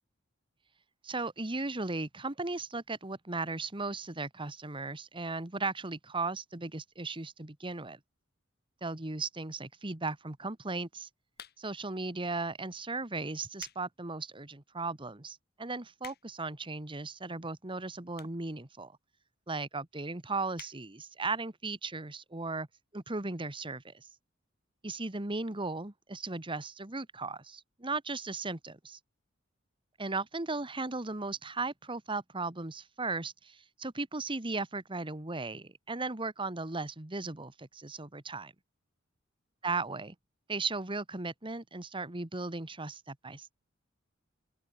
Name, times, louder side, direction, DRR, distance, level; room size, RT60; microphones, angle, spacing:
voice 1, 1.0-8.0 8.8-11.1 11.6-19.0 19.5-22.7 22.9-24.1 24.8-29.0 30.0-38.5 39.6-40.1 40.5-43.5, right 3 dB, 25° right, 1.5 m, -36 dB
sound 1, 11.3-11.9 12.6-12.8 13.3-13.9 14.3-14.4 15.0-15.1 15.3-15.4 15.6-16.5 17.3-17.4 18.1-18.5 18.8-18.9 19.1-19.2 19.4-19.5 19.8-20.0 20.5-20.8 21.2-21.3 21.5-21.6, left 10 dB, 55° left, 2.9 m, -50 dB
open air
head